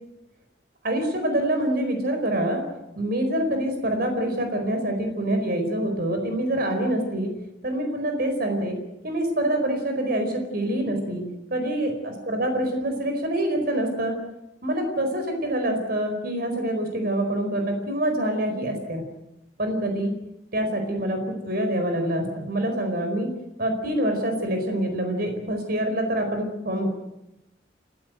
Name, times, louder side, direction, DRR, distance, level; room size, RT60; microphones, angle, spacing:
voice 1, 0.8-2.6 3.0-7.3 7.6-8.8 9.0-11.2 11.5-14.2 14.6-19.0 19.6-20.1 20.5-23.3 23.6-26.9, right 1 dB, 55° right, 5 dB, 4.6 m, -26 dB
29.5 x 16.5 x 8.0 m, 0.90 s
head